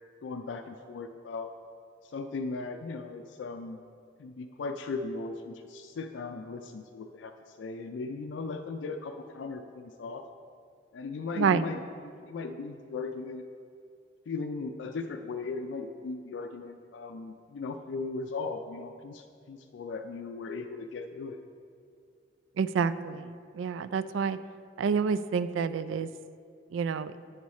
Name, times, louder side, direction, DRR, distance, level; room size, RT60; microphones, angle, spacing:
voice 1, 0.2-1.5 2.0-3.8 4.2-10.2 10.9-11.8 12.2-13.4 14.3-21.4, left 4 dB, 75° left, 6 dB, 0.4 m, -37 dB
voice 2, 11.3-11.7 22.6-24.4 24.8-26.1 26.7-27.1, right 6 dB, 90° right, 15 dB, 0.3 m, -28 dB
7.9 x 4.1 x 6.2 m, 2.2 s
head